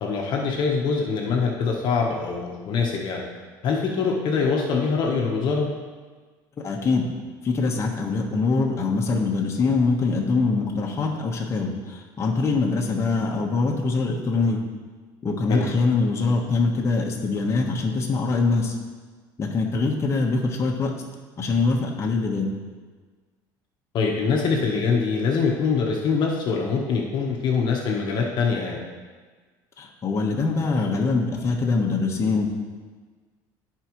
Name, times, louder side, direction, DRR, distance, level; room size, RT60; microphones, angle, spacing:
voice 1, 0.0-3.2 3.6-5.7 15.5-15.6 23.9-28.8, left 5 dB, 50° left, 0 dB, 1.2 m, -24 dB
voice 2, 6.6-7.1 7.4-14.6 15.2-18.8 19.4-20.9 21.4-22.6 29.8-32.5, left 3 dB, 30° left, -2 dB, 1.3 m, -23 dB
14.0 x 4.8 x 3.1 m, 1.4 s
supercardioid pair, 115°, 10 cm